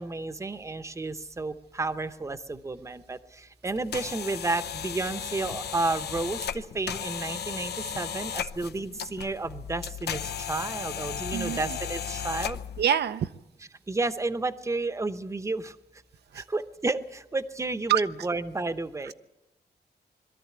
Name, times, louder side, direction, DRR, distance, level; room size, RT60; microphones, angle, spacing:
voice 1, 0.0-12.6 13.9-15.7 16.3-19.1, right 3 dB, 15° right, 12 dB, 0.8 m, -31 dB
sound 1, 3.7-12.8, left 8 dB, 80° left, 0.7 m, -35 dB
voice 2, 11.3-11.8 12.8-13.3 16.3-16.4 17.9-18.0 19.1-19.2, right 9 dB, 85° right, 11 dB, 0.7 m, -26 dB
22.5 x 13.0 x 9.5 m, 0.95 s
wide cardioid pair, 145°, 17 cm